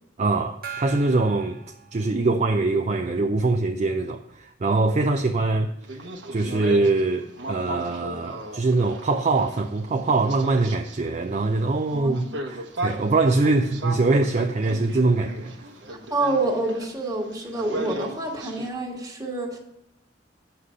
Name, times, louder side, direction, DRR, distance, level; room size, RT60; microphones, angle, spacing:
voice 1, 0.2-1.6 1.9-6.0 6.3-15.5, right 3 dB, 40° right, 0.5 m, -23 dB
Gong, 0.6-2.7, right 7 dB, 55° right, 0.8 m, -40 dB
sound 1, 5.8-18.7, right 2 dB, 90° right, 1.1 m, -36 dB
voice 2, 11.9-12.3 15.9-19.6, right 2 dB, 20° right, 1.6 m, -28 dB
8.3 x 5.6 x 6.3 m
head